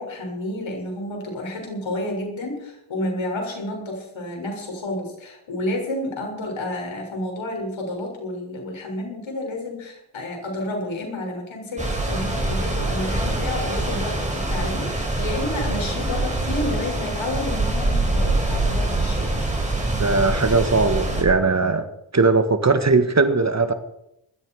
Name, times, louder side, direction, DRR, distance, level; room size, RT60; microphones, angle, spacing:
voice 1, 0.0-19.3, left 1 dB, 70° left, 1 dB, 6.9 m, -30 dB
sound 1, 11.8-21.2, right 2 dB, 15° right, 6.5 m, -24 dB
voice 2, 19.9-21.9 22.1-23.7, right 3 dB, 35° right, 9 dB, 1.8 m, -19 dB
20.0 x 14.0 x 4.9 m, 0.83 s
cardioid pair, 65°, 48 cm